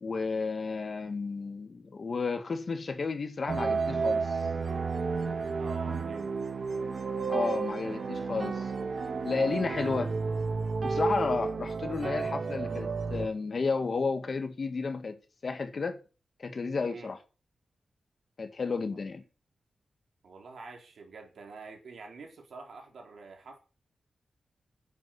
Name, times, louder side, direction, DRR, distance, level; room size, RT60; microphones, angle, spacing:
voice 1, 0.0-4.4 7.3-8.7 9.2-10.2 10.8-16.0 16.4-17.2 18.4-19.2, left 4 dB, 45° left, 1.8 m, -32 dB
sound 1, 3.5-13.3, right 4 dB, 50° right, 1.5 m, -32 dB
voice 2, 5.6-6.3 7.4-7.6 16.8-17.1 18.9-19.0 20.2-23.6, right 4 dB, 70° right, 4.3 m, -46 dB
10.5 x 8.5 x 9.6 m
wide cardioid pair, 165°, 0 cm